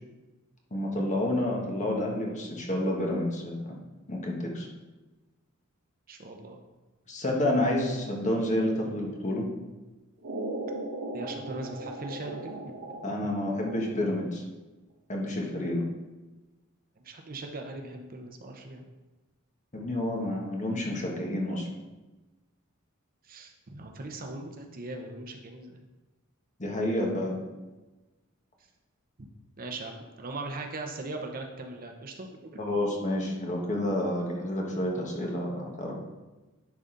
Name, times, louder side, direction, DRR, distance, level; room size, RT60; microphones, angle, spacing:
voice 1, 0.7-3.8 4.1-4.7 7.1-9.5 13.0-14.4 15.1-15.8 19.7-21.7 26.6-27.4 32.6-35.9, left 1 dB, 35° left, -1 dB, 1.3 m, -29 dB
voice 2, 6.1-6.6 11.1-13.6 17.0-18.9 23.2-25.8 29.6-32.7, right 2 dB, 40° right, 3 dB, 0.8 m, -40 dB
sound 1, 10.2-14.3, right 2 dB, 75° right, 0.9 m, -38 dB
10.5 x 4.0 x 3.8 m, 1.1 s
head